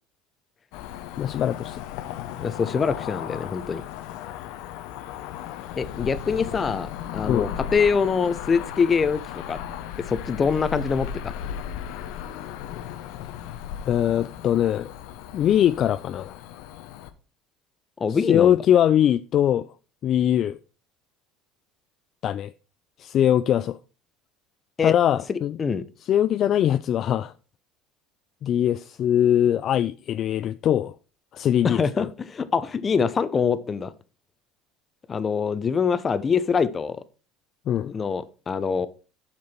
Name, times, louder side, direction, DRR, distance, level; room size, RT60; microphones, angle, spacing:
Cricket / Motor vehicle (road), 0.7-17.1, left 9 dB, 75° left, 0.8 m, -36 dB
voice 1, 1.2-1.8 7.3-7.5 13.9-14.9 15.3-16.4 18.3-19.7 20.0-20.6 22.2-22.5 23.0-23.8 24.8-25.6 26.1-27.3 28.4-30.9 31.3-31.8 37.7-37.9, left 10 dB, 50° left, 0.3 m, -21 dB
voice 2, 2.4-3.8 5.8-9.2 9.5-9.6 10.0-11.3 18.0-18.6 24.8-24.9 25.3-25.8 31.6-33.9 35.1-37.0 37.8-38.9, left 6 dB, 30° left, 0.8 m, -24 dB
7.6 x 6.0 x 4.3 m
supercardioid pair, 85°, 0 cm